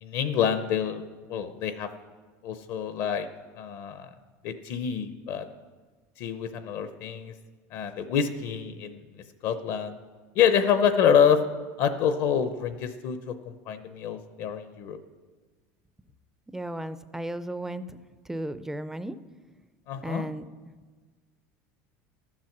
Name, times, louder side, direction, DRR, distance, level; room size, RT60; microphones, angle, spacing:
voice 1, 0.0-1.0 1.3-1.9 2.4-3.3 3.6-4.1 4.4-5.5 6.2-7.3 7.7-9.9 10.3-11.4 11.8-15.0 19.9-20.3, left 8 dB, 55° left, 10 dB, 0.7 m, -26 dB
voice 2, 16.5-18.0 18.3-19.2 20.0-20.5, right 1 dB, 5° right, 12 dB, 0.4 m, -34 dB
13.0 x 7.5 x 6.0 m, 1.4 s
supercardioid pair, 140°, 8 cm